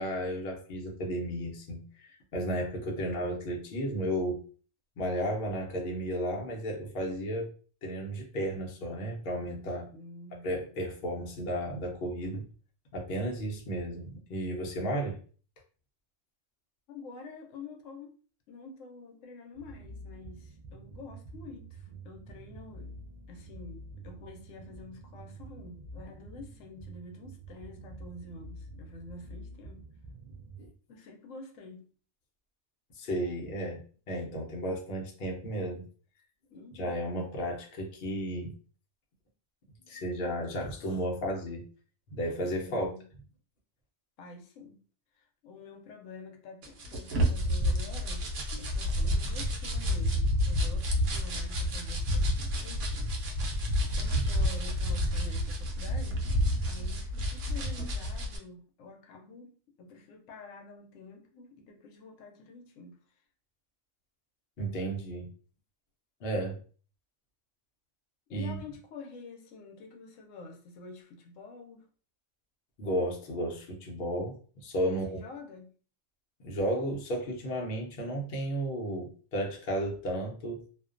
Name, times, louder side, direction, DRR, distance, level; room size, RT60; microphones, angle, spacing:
voice 1, 0.0-4.4 5.0-7.5 7.8-9.9 10.4-12.4 12.9-15.2 30.6-30.7 33.0-35.8 36.7-38.5 39.9-41.7 42.1-42.9 64.6-65.3 66.2-66.6 68.3-68.6 72.8-75.2 76.4-80.6, right 1 dB, 55° left, 0.7 m, -33 dB
voice 2, 9.9-10.5 16.9-18.1 18.5-23.0 23.3-29.9 30.9-31.9 36.5-37.1 42.6-43.1 44.2-44.8 45.1-48.3 48.6-56.3 56.6-63.0 68.3-71.9 74.9-75.7, left 3 dB, 85° left, 0.9 m, -48 dB
sound 1, 19.5-30.7, right 2 dB, 55° right, 0.5 m, -47 dB
sound 2, 46.6-58.4, equal, 75° right, 1.0 m, -29 dB
2.4 x 2.2 x 2.4 m
omnidirectional pair, 1.3 m